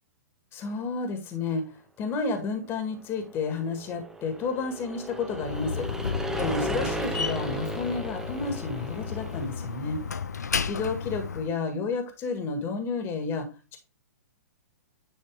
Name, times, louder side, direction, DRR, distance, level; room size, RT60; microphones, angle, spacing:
voice 1, 0.5-5.9 6.4-10.0 10.6-13.8, left 4 dB, 25° left, 6 dB, 1.7 m, -31 dB
sound 1, 3.0-9.9, right 2 dB, 5° right, 0.8 m, -36 dB
Slam, 5.3-11.5, left 6 dB, 80° left, 0.5 m, -33 dB
10.5 x 4.1 x 3.5 m, 0.30 s
figure-of-eight pair, 115°, 9 cm